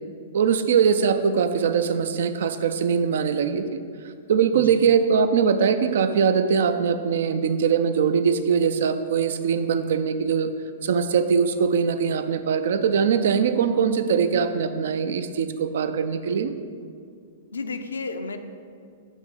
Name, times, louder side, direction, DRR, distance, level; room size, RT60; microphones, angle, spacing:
voice 1, 0.3-3.8 4.3-10.5 10.8-16.5, right 6 dB, 65° right, 10 dB, 0.4 m, -22 dB
voice 2, 4.5-4.9 17.5-18.4, left 4 dB, 80° left, 8 dB, 0.5 m, -32 dB
7.2 x 3.6 x 5.6 m, 2.2 s
figure-of-eight pair, 110°, 0 cm